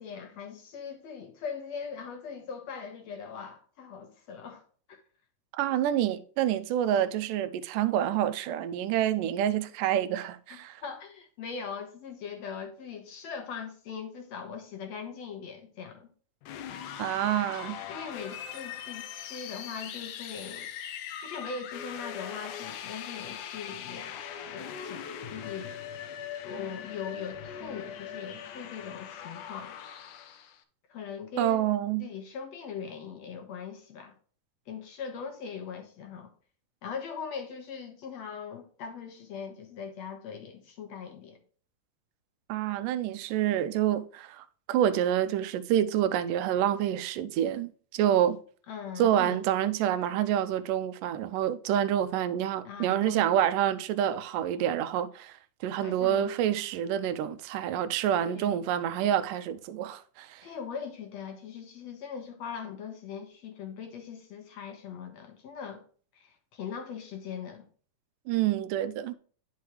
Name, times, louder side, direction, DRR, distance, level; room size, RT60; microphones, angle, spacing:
voice 1, 0.0-5.0 10.5-16.1 17.9-20.7 21.2-25.8 26.4-29.8 30.9-31.7 32.0-34.1 34.7-36.3 36.8-41.4 48.7-49.4 52.6-53.3 55.8-56.3 58.2-58.6 60.4-65.8 66.1-67.7, left 6 dB, 60° left, 2.3 m, -40 dB
voice 2, 5.5-10.8 17.0-17.8 31.4-32.0 42.5-48.4 49.0-55.4 55.6-60.4 68.3-69.2, right 11 dB, 90° right, 2.2 m, -27 dB
sound 1, 16.4-30.6, left 9 dB, 80° left, 2.2 m, -41 dB
9.3 x 6.5 x 3.1 m
omnidirectional pair, 3.7 m